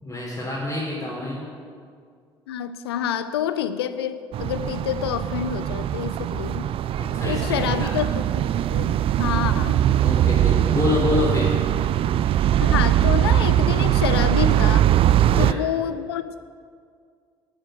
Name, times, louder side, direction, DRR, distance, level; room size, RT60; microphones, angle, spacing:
voice 1, 0.0-1.5 7.0-7.9 10.0-11.6 15.1-15.6, left 2 dB, 20° left, -6 dB, 3.9 m, -27 dB
voice 2, 2.5-6.7 7.2-9.8 12.6-14.9 15.4-16.4, left 9 dB, 75° left, 12 dB, 0.6 m, -28 dB
sound 1, 4.3-15.5, right 11 dB, 45° right, 0.4 m, -21 dB
12.5 x 8.9 x 7.7 m, 2.1 s
figure-of-eight pair, 50°, 13 cm